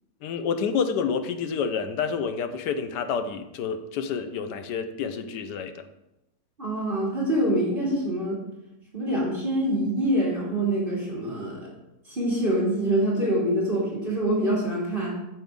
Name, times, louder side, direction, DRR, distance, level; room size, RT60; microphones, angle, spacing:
voice 1, 0.2-5.7, left 6 dB, 90° left, 8 dB, 1.4 m, -28 dB
voice 2, 6.6-8.4 8.9-11.7 12.1-15.2, right 1 dB, 30° right, -5 dB, 2.5 m, -25 dB
9.2 x 7.1 x 3.6 m, 0.89 s
omnidirectional pair, 1.8 m